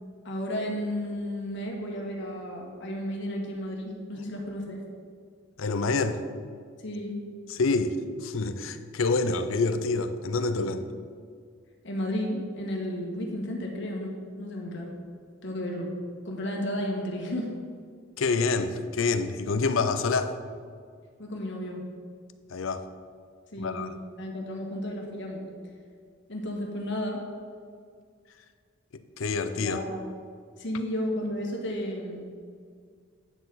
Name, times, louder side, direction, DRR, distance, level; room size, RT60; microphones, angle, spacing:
voice 1, 0.2-4.8 6.8-7.2 11.8-14.1 14.4-14.9 15.4-15.9 16.2-17.5 21.2-21.8 23.5-23.9 24.2-25.4 26.3-27.2 29.5-30.0 30.6-32.3, equal, 65° left, 0 dB, 1.6 m, -33 dB
voice 2, 5.6-6.2 7.5-10.9 18.2-20.4 22.5-22.8 23.6-23.9 29.2-29.8, left 3 dB, 85° left, 10 dB, 0.6 m, -27 dB
9.8 x 6.7 x 4.1 m, 2.1 s
head